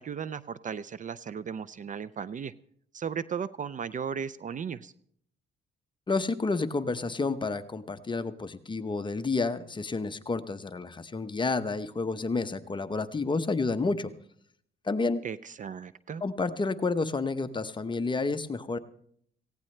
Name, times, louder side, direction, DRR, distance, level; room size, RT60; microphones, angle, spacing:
voice 1, 0.0-2.5 2.9-4.9 15.2-16.2, right 7 dB, 40° right, 17 dB, 0.5 m, -36 dB
voice 2, 6.1-14.1 14.8-15.2 16.2-18.8, left 3 dB, 25° left, 9 dB, 0.8 m, -30 dB
18.0 x 16.0 x 3.3 m, 0.67 s
cardioid pair, 90°, 20 cm